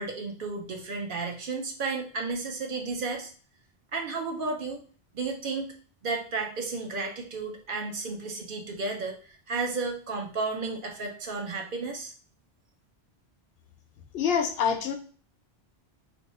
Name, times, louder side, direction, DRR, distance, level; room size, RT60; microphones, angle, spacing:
voice 1, 0.0-3.3 3.9-4.8 5.1-5.7 6.0-12.1, right 3 dB, 60° right, 2 dB, 0.8 m, -33 dB
voice 2, 14.1-14.9, left 7 dB, 70° left, 6 dB, 0.7 m, -26 dB
2.6 x 2.3 x 4.1 m, 0.41 s
omnidirectional pair, 1.1 m